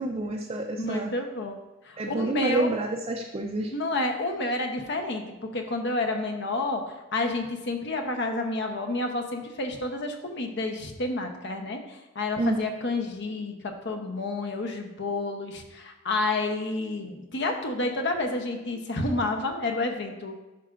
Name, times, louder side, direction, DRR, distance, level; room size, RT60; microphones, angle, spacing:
voice 1, 0.0-1.1 2.0-3.7 12.4-12.6, right 2 dB, 30° right, 1 dB, 0.5 m, -28 dB
voice 2, 0.8-1.6 1.8-2.8 3.7-5.2 5.5-6.8 7.1-20.4, left 2 dB, 60° left, 4 dB, 0.9 m, -30 dB
10.5 x 5.9 x 2.5 m, 1.1 s
head